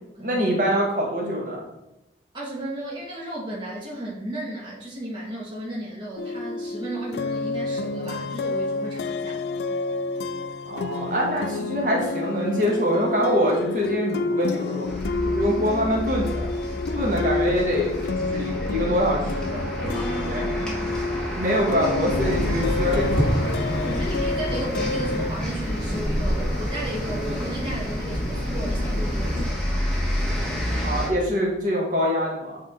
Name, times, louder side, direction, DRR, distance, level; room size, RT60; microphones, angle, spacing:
voice 1, 0.2-1.6 10.7-14.9 15.2-16.5 16.9-19.6 20.0-20.5 21.4-23.3 23.7-23.8 30.8-32.6, equal, 45° right, -2 dB, 1.4 m, -25 dB
voice 2, 2.3-9.4 19.8-20.9 23.7-29.8, right 1 dB, 25° right, -6 dB, 1.3 m, -34 dB
sound 1, 6.2-25.3, left 3 dB, 65° left, 0.3 m, -29 dB
sound 2, 14.8-31.1, equal, 5° left, 1.2 m, -30 dB
sound 3, 22.1-29.5, equal, 30° left, 1.8 m, -28 dB
8.2 x 3.7 x 3.6 m, 0.92 s
head